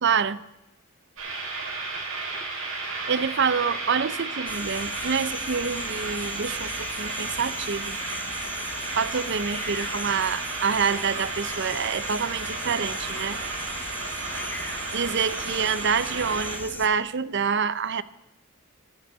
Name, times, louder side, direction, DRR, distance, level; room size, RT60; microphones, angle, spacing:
voice 1, 0.0-0.4 3.1-8.0 9.0-13.4 14.9-18.0, right 6 dB, 55° right, 16 dB, 0.6 m, -27 dB
sound 1, 1.2-16.6, right 3 dB, 70° right, 5.7 m, -33 dB
sound 2, 4.5-16.9, left 2 dB, 10° left, 1.1 m, -38 dB
12.5 x 6.5 x 8.9 m, 0.94 s
head